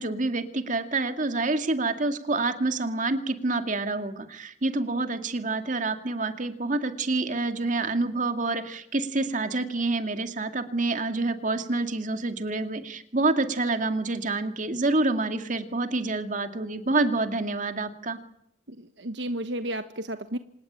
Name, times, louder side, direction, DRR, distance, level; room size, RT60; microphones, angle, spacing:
voice 1, 0.0-18.2, right 2 dB, 45° right, 7 dB, 2.4 m, -27 dB
voice 2, 18.7-20.4, right 1 dB, 75° right, 9 dB, 1.2 m, -33 dB
26.5 x 18.5 x 8.8 m, 0.72 s
head